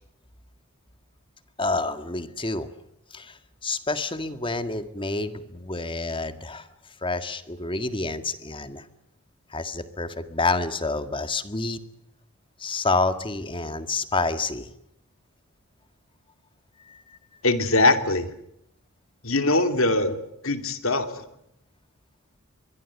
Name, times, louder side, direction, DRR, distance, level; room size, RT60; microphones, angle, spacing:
voice 1, 1.6-2.7 3.1-6.7 7.0-8.9 9.5-11.8 12.6-14.7 16.9-17.2, left 3 dB, 25° left, 10 dB, 1.8 m, -28 dB
voice 2, 17.4-18.3 19.2-20.2 20.4-21.3, left 2 dB, 65° left, 8 dB, 2.8 m, -22 dB
25.0 x 22.5 x 8.3 m, 0.78 s
head